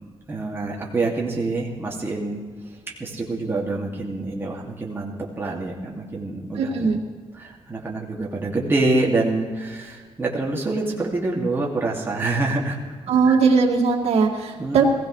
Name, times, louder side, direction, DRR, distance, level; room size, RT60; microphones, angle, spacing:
voice 1, 0.3-2.4 3.0-6.9 7.3-12.8 13.2-13.4 14.6-14.8, right 2 dB, 20° right, -3 dB, 2.2 m, -26 dB
voice 2, 6.6-7.0 13.1-14.8, right 5 dB, 75° right, 0 dB, 2.2 m, -19 dB
20.5 x 16.0 x 3.2 m, 1.5 s
wide cardioid pair, 140°, 11 cm